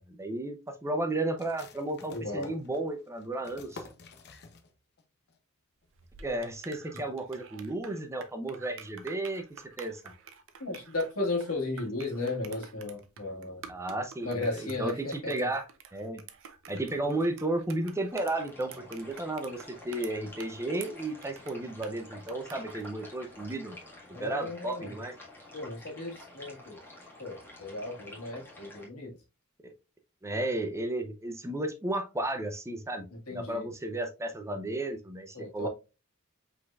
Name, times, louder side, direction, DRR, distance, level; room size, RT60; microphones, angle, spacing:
voice 1, 0.1-3.8 6.2-9.4 9.8-10.0 13.7-15.7 15.9-16.2 16.7-23.8 24.2-25.1 29.6-29.7 30.2-35.7, right 2 dB, 15° right, 6 dB, 0.6 m, -33 dB
sound 1, 1.4-5.0 5.3-5.4 5.8-6.3, left 3 dB, 50° left, 0.7 m, -50 dB
voice 2, 2.1-2.5 6.9-7.0 10.6-13.7 14.2-15.5 24.1-24.9 25.5-26.8 27.2-29.2 33.1-33.7 35.3-35.7, left 2 dB, 80° left, 0 dB, 1.8 m, -35 dB
sound 2, 5.9-23.7, right 7 dB, 60° right, 0.7 m, -50 dB
sound 3, 18.1-28.9, left 1 dB, 10° left, 1.6 m, -49 dB
5.4 x 4.0 x 2.3 m, 0.28 s
head